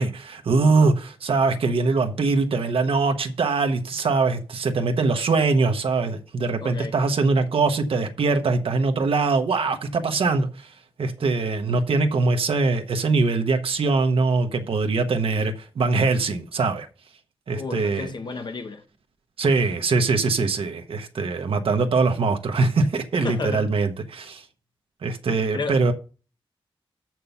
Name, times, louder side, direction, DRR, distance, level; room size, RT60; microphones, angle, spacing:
voice 1, 0.0-10.7 11.0-16.9 17.5-18.1 19.4-24.4 25.0-25.9, right 3 dB, 80° right, 1.0 m, -22 dB
voice 2, 6.6-6.9 17.5-18.8 23.2-23.7 25.5-25.8, left 4 dB, 55° left, 1.1 m, -32 dB
7.0 x 6.0 x 6.9 m
wide cardioid pair, 140°, 9 cm